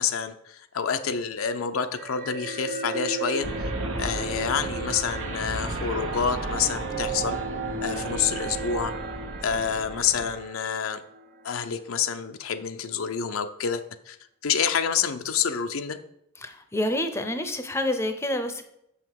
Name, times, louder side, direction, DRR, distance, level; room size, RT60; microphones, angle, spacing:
voice 1, 0.0-3.7 4.0-7.4 7.8-8.9 9.4-11.0 11.4-14.2 14.4-16.0, left 7 dB, 85° left, 8 dB, 0.6 m, -28 dB
sound 1, 1.9-11.5, right 4 dB, 45° right, 0.6 m, -35 dB
sound 2, 3.4-10.3, right 1 dB, 85° right, 1.2 m, -35 dB
voice 2, 16.4-18.6, left 1 dB, 15° left, 8 dB, 0.6 m, -28 dB
6.9 x 5.7 x 4.7 m, 0.77 s
head